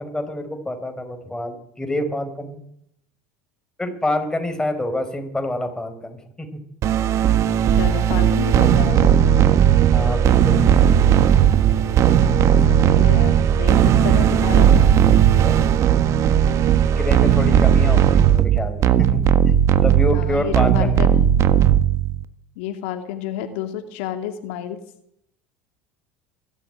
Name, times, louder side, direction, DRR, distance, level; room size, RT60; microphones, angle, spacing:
voice 1, 0.0-2.6 3.8-6.6 9.9-10.7 14.8-15.9 17.0-19.5 19.8-21.2, left 1 dB, 10° left, 6 dB, 4.9 m, -27 dB
sound 1, 6.8-22.2, right 9 dB, 50° right, 1.5 m, -16 dB
voice 2, 7.8-9.4 12.7-14.8 20.1-21.5 22.6-24.8, left 10 dB, 70° left, 6 dB, 2.5 m, -30 dB
22.5 x 13.5 x 9.1 m, 0.78 s
hypercardioid pair, 85°, 7 cm